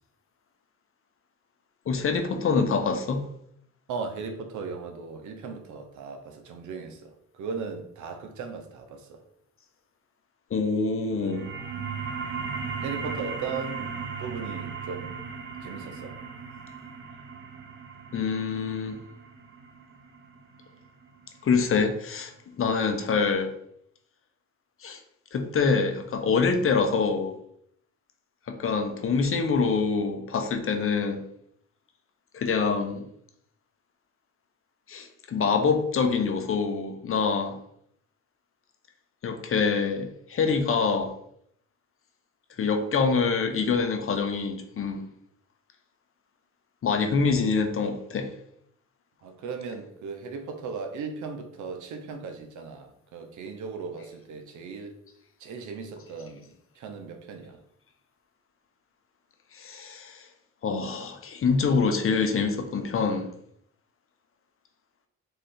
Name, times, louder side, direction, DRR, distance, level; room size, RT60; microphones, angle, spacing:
voice 1, 1.9-3.2 10.5-11.5 18.1-19.0 21.4-23.5 24.8-25.0 25.3-27.3 28.5-31.2 32.3-33.0 34.9-37.6 39.2-41.1 42.6-45.1 46.8-48.3 59.5-60.3 60.6-63.3, left 5 dB, 45° left, 0.8 m, -25 dB
voice 2, 3.9-9.2 12.8-15.1 15.6-16.2 49.2-55.0 55.4-57.6, right 5 dB, 75° right, 0.9 m, -37 dB
sound 1, 11.1-22.2, right 5 dB, 40° right, 0.8 m, -37 dB
3.9 x 3.1 x 4.2 m
cardioid pair, 90°, 30 cm